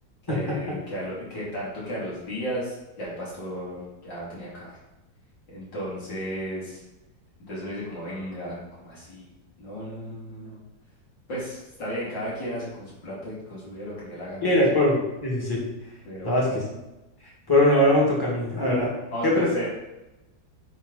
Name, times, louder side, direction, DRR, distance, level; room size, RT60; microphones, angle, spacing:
voice 1, 0.3-4.7 5.5-6.8 7.5-9.3 9.6-10.6 11.3-14.5 16.1-16.4 19.1-19.7, equal, 70° left, -8 dB, 3.7 m, -34 dB
voice 2, 14.4-15.6 16.2-16.6 17.5-18.9 19.2-19.5, left 1 dB, 10° left, -4 dB, 2.0 m, -21 dB
9.7 x 4.0 x 4.2 m, 1.0 s
omnidirectional pair, 2.0 m